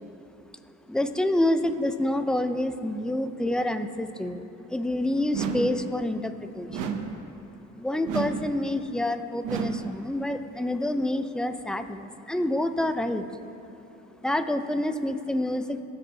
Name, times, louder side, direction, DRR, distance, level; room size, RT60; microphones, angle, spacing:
voice 1, 0.9-7.0 7.7-13.2 14.2-15.8, left 1 dB, ahead, 8 dB, 0.6 m, -28 dB
sound 1, 5.3-5.9 6.7-7.3 8.1-8.6 9.4-10.0, right 6 dB, 90° right, 0.8 m, -31 dB
22.5 x 7.6 x 2.8 m, 2.9 s
cardioid pair, 90°, 30 cm